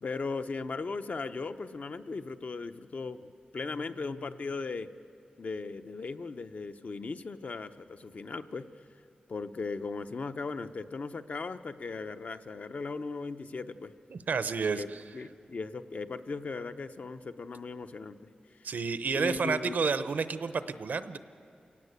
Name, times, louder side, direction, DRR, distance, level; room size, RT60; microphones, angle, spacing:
voice 1, 0.0-4.9 5.4-8.7 9.3-13.9 14.7-14.9 15.1-18.2 19.1-19.8, left 4 dB, 55° left, 9 dB, 0.8 m, -37 dB
voice 2, 14.1-15.0 18.6-21.2, right 5 dB, 70° right, 12 dB, 0.8 m, -30 dB
28.5 x 18.0 x 8.1 m, 2.5 s
wide cardioid pair, 120°, 3 cm